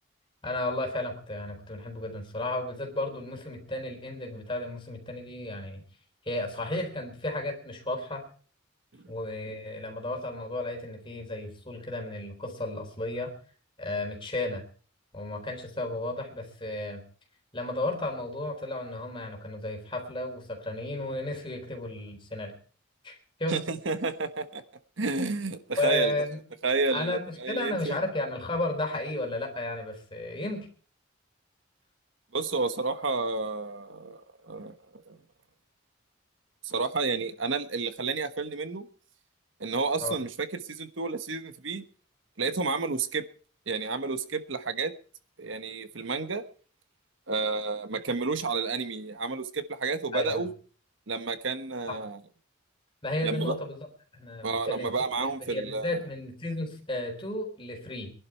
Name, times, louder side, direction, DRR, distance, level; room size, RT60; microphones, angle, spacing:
voice 1, 0.4-5.8 6.2-8.3 9.1-13.3 13.8-14.6 15.1-17.0 17.5-22.5 23.0-23.6 25.8-26.4 26.9-30.7 40.0-40.1 50.1-50.5 51.9-52.0 53.0-53.9 54.1-54.9 55.2-58.1, left 1 dB, 25° left, 3 dB, 4.0 m, -33 dB
voice 2, 23.5-24.6 25.0-26.1 26.6-28.0 32.3-34.8 35.1-35.2 36.6-38.9 39.6-41.8 42.4-43.2 43.7-44.9 45.4-46.4 47.3-50.5 51.1-52.2 53.2-53.5 54.4-56.0, right 3 dB, 70° right, 10 dB, 1.2 m, -30 dB
22.5 x 11.5 x 4.6 m, 0.42 s
head